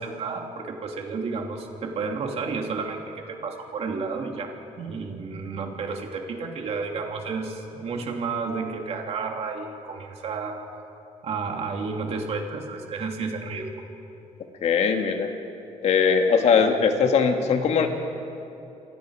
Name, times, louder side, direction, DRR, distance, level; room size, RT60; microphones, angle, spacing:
voice 1, 0.0-10.7 11.2-13.7, right 4 dB, 55° right, 2 dB, 2.9 m, -31 dB
voice 2, 14.6-15.3 15.8-17.9, left 6 dB, 60° left, 4 dB, 2.2 m, -20 dB
28.0 x 26.0 x 5.1 m, 2.8 s
cardioid pair, 140°, 13 cm